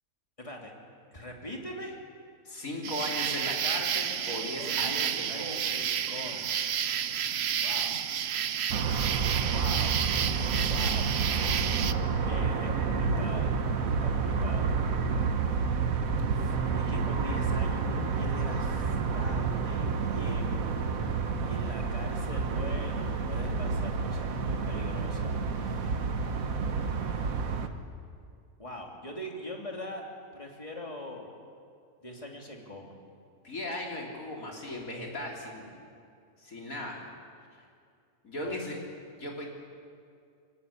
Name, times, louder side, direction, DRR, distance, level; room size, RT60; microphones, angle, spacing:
voice 1, 0.4-0.7 1.1-2.0 4.6-6.6 7.6-7.9 9.4-9.9 10.7-11.6 12.2-13.5 13.8-14.7 16.2-20.8 21.1-26.0 28.6-30.0 30.3-31.3 32.0-32.9 38.4-38.7, left 1 dB, 20° left, 0 dB, 3.1 m, -42 dB
voice 2, 2.5-5.6 33.4-35.7 36.4-37.0 38.2-38.8 39.2-39.5, left 1 dB, 70° left, -1 dB, 4.0 m, -37 dB
sound 1, 2.8-11.9, right 8 dB, 55° right, 0.9 m, -31 dB
sound 2, 8.7-27.7, right 5 dB, 70° right, 1.6 m, -29 dB
22.5 x 19.0 x 8.6 m, 2.3 s
omnidirectional pair, 1.5 m